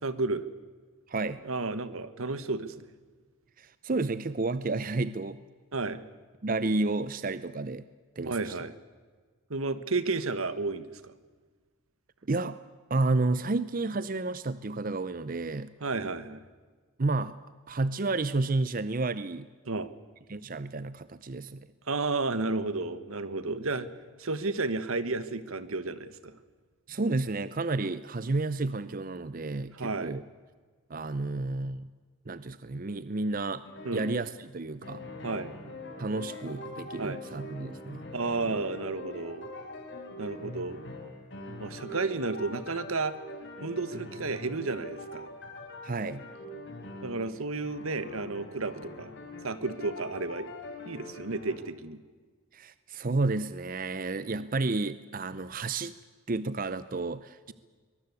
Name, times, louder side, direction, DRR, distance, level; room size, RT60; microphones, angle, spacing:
voice 1, 0.0-0.4 1.4-2.8 5.7-6.0 8.2-8.7 9.5-11.1 15.8-16.4 19.7-19.9 21.9-23.9 24.2-26.4 29.7-30.2 33.8-34.0 35.2-35.5 37.0-37.2 38.1-39.5 40.2-40.8 41.6-43.1 43.6-45.3 47.0-49.1 49.4-50.5 50.8-52.0, right 3 dB, 80° right, 13 dB, 1.5 m, -32 dB
voice 2, 1.1-1.4 3.6-5.4 6.4-7.9 8.2-8.5 12.3-12.6 12.9-15.7 17.0-17.4 17.7-19.5 20.3-21.7 26.9-30.2 30.9-31.9 32.3-33.6 33.9-35.0 36.0-38.0 45.8-46.3 52.5-56.0 56.3-57.5, right 3 dB, 40° right, 15 dB, 0.6 m, -31 dB
sound 1, 33.6-34.3 34.8-47.3 47.6-51.6, left 1 dB, 60° left, 4.3 m, -43 dB
23.0 x 21.0 x 8.3 m, 1.5 s
head